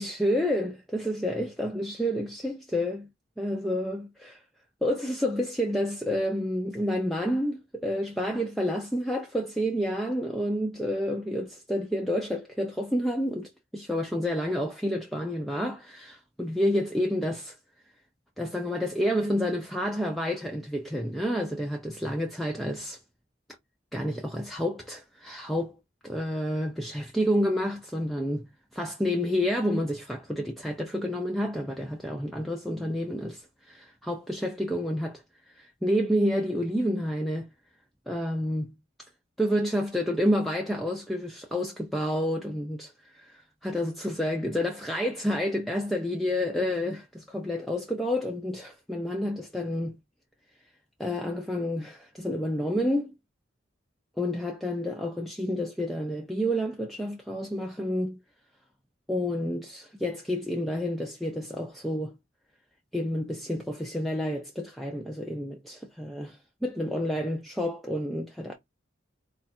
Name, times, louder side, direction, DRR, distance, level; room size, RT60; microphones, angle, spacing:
voice 1, 0.0-3.1 3.4-4.4 4.8-17.6 18.4-23.0 23.9-25.8 26.0-28.5 28.7-35.2 35.5-37.5 38.1-38.7 39.4-50.0 51.0-53.1 54.2-58.2 59.1-62.1 62.9-68.5, equal, ahead, 0.5 m, -29 dB
4.3 x 2.5 x 4.1 m
head